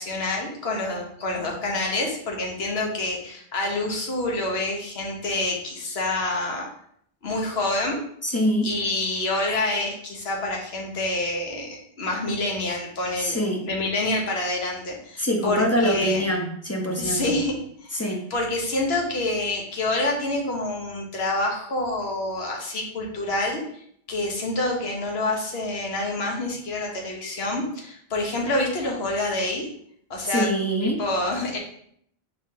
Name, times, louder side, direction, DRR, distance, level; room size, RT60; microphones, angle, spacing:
voice 1, 0.0-6.7 7.2-8.0 8.3-8.4 8.6-16.3 17.0-29.7 30.1-30.5 30.8-31.6, left 2 dB, 80° left, 0 dB, 1.2 m, -27 dB
voice 2, 8.2-8.7 13.2-13.6 15.2-17.3 17.9-18.2 30.3-31.0, equal, 20° left, 0 dB, 0.4 m, -24 dB
4.8 x 2.8 x 3.7 m, 0.67 s
omnidirectional pair, 1.0 m